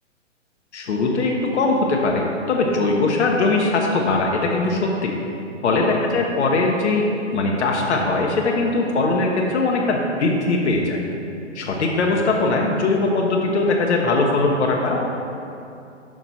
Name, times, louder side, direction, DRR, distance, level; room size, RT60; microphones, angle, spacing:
voice 1, 0.7-5.1 5.6-7.0 7.3-11.0 11.5-15.0, left 3 dB, 60° left, 0 dB, 0.9 m, -20 dB
6.2 x 5.7 x 4.0 m, 2.6 s
hypercardioid pair, 135°, 37 cm